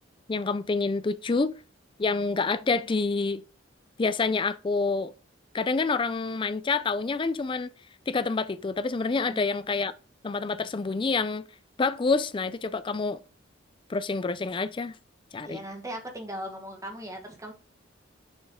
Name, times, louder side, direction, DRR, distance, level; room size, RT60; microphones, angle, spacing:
voice 1, 0.3-1.5 2.0-3.4 4.0-5.1 5.5-7.7 8.1-9.9 10.2-11.4 11.8-13.2 13.9-14.9 15.3-15.6, left 4 dB, 25° left, 0.4 m, -27 dB
voice 2, 15.4-17.5, equal, 15° right, 1.4 m, -38 dB
7.0 x 5.6 x 3.6 m
head